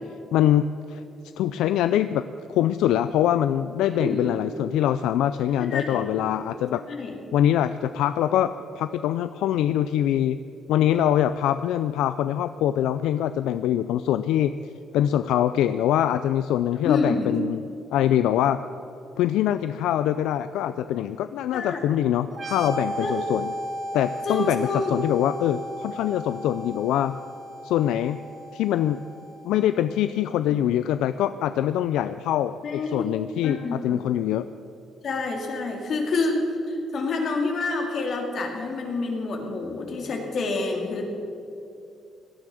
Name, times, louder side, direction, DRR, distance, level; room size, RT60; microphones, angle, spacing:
voice 1, 0.3-1.0 1.4-2.2 2.5-6.8 7.3-10.4 10.7-14.6 14.9-18.6 19.2-23.5 23.9-27.2 27.6-28.2 28.5-29.0 29.4-34.5, left 11 dB, 90° left, 12 dB, 0.3 m, -24 dB
voice 2, 3.9-4.3 5.6-6.0 6.9-7.2 16.8-17.3 21.5-21.8 23.0-23.1 24.2-24.9 30.5-30.6 32.6-33.1 33.4-34.0 35.0-41.1, left 3 dB, 60° left, 1 dB, 2.8 m, -28 dB
sound 1, 22.3-29.8, right 1 dB, 40° right, 1.5 m, -35 dB
17.5 x 11.0 x 6.4 m, 2.7 s
cardioid pair, 90°, 0 cm